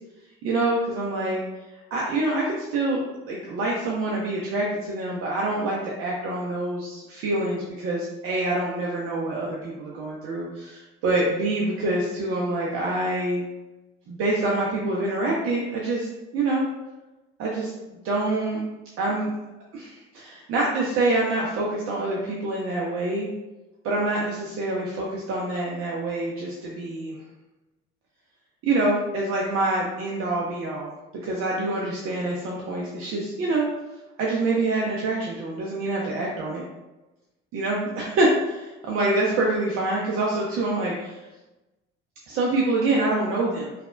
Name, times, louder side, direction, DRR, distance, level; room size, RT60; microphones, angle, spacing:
voice 1, 0.4-1.4 1.9-3.0 3.3-13.4 14.1-16.1 16.3-16.6 17.4-17.7 18.0-18.6 19.0-19.3 19.7-23.3 23.8-27.2 28.6-30.9 31.2-33.7 34.2-36.6 37.5-41.2 42.3-43.7, right 2 dB, 40° right, -3 dB, 0.5 m, -26 dB
3.1 x 2.0 x 2.3 m, 1.0 s
figure-of-eight pair, 55°, 37 cm